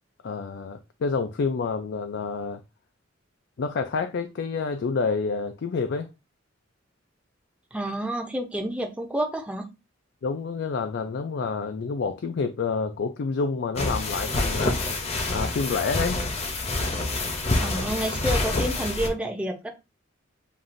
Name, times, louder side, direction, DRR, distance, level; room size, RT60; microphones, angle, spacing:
voice 1, 0.2-2.6 3.6-6.1 10.2-14.8 15.3-16.2, left 4 dB, 60° left, 0.4 m, -28 dB
voice 2, 7.7-9.7 17.6-19.7, right 1 dB, 5° right, 0.6 m, -29 dB
sound 1, 13.8-19.1, left 2 dB, 35° left, 0.7 m, -27 dB
7.2 x 2.5 x 2.5 m
head